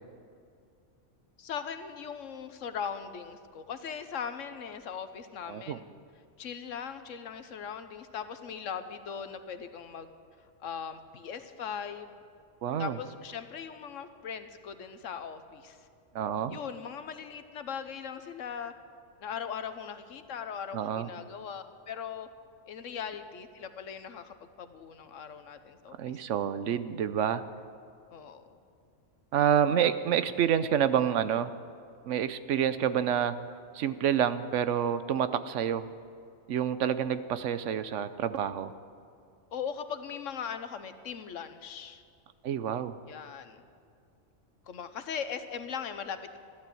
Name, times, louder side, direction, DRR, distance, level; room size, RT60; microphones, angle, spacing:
voice 1, 1.4-5.8 6.4-10.1 10.6-12.2 12.8-15.9 16.5-18.7 19.2-22.3 22.7-26.2 28.1-28.5 39.5-42.0 43.1-43.6 44.7-46.4, left 7 dB, 80° left, 10 dB, 1.3 m, -39 dB
voice 2, 5.5-5.8 12.6-13.0 16.1-16.6 20.7-21.1 26.0-27.4 29.3-31.5 32.1-33.3 33.7-35.9 36.5-38.7 42.4-42.9, right 9 dB, 75° right, 13 dB, 1.0 m, -28 dB
15.0 x 11.5 x 7.7 m, 2.4 s
omnidirectional pair, 1.3 m